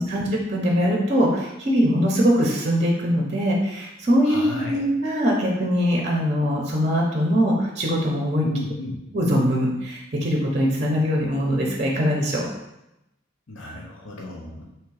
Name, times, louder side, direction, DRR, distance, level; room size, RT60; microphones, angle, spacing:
voice 1, 0.0-4.4 4.7-8.4 9.1-12.4, equal, 35° right, -1 dB, 0.7 m, -22 dB
voice 2, 4.2-4.8 8.4-8.9 13.5-14.6, left 1 dB, 80° left, -2 dB, 0.9 m, -33 dB
3.6 x 3.1 x 4.7 m, 0.89 s
head